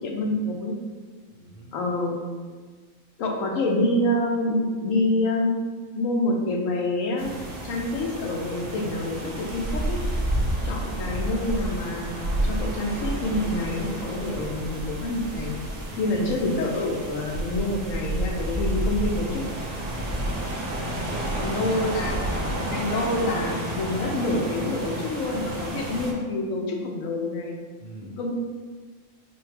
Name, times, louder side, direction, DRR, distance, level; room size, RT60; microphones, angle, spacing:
voice 1, 0.0-0.8 1.7-2.2 3.2-5.6 6.0-7.3 7.6-10.0 10.6-15.6 16.0-19.5 21.4-22.3 22.7-27.6 28.0-28.3, left 1 dB, 85° left, 1 dB, 1.0 m, -27 dB
voice 2, 1.3-1.7 14.2-14.6 15.9-16.3 20.0-21.4 27.8-28.2, equal, 40° left, -8 dB, 0.7 m, -43 dB
sound 1, 7.2-26.1, right 1 dB, 50° right, 0.4 m, -30 dB
4.3 x 2.1 x 3.3 m, 1.5 s
omnidirectional pair, 1.4 m